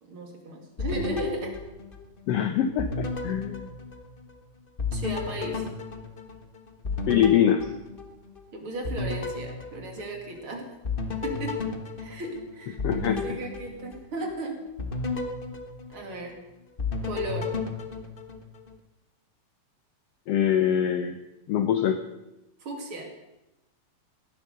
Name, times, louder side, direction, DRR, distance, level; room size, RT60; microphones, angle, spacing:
voice 1, 0.0-1.5 4.9-5.7 8.5-10.7 11.2-11.6 12.0-14.6 15.9-16.4 17.0-17.5 22.6-23.1, right 1 dB, 45° right, 2 dB, 3.0 m, -35 dB
sound 1, 0.8-2.4 2.8-4.4 4.8-8.4 8.8-10.4 10.8-14.3 14.8-16.4 16.8-18.7, left 4 dB, 90° left, 0.4 m, -33 dB
voice 2, 2.3-3.7 7.1-7.7 12.8-13.2 20.3-21.2 21.5-22.0, left 9 dB, 70° left, 8 dB, 1.6 m, -23 dB
16.5 x 11.0 x 6.6 m, 0.95 s
omnidirectional pair, 3.4 m